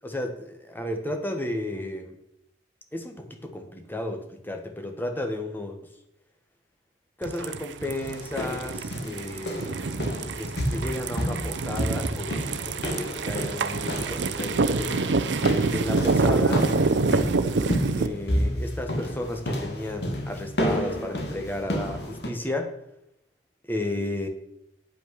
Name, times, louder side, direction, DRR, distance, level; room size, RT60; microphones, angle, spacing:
voice 1, 0.0-2.2 2.9-5.9 7.2-10.1 10.4-14.9 15.7-16.7 17.9-22.8 23.6-24.3, left 1 dB, 10° left, 5 dB, 1.1 m, -33 dB
sound 1, 7.2-18.1, right 3 dB, 80° right, 0.6 m, -26 dB
sound 2, 8.0-22.3, equal, 70° left, 1.8 m, -31 dB
8.9 x 5.7 x 6.2 m, 0.80 s
head